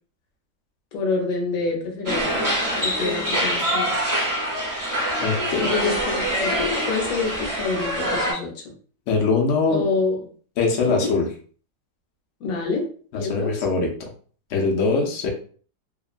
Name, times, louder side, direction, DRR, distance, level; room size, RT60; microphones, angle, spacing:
voice 1, 0.9-2.4 2.7-3.9 5.5-8.7 9.7-10.2 10.9-11.1 12.4-12.9 13.1-13.6, left 4 dB, 60° left, 0 dB, 1.0 m, -27 dB
sound 1, 2.1-8.3, equal, 30° right, 0.3 m, -24 dB
voice 2, 5.2-5.7 9.1-9.9 10.6-11.3 13.1-14.1 14.5-15.3, left 4 dB, 90° left, 0 dB, 0.6 m, -22 dB
3.0 x 2.1 x 2.4 m, 0.43 s
omnidirectional pair, 2.0 m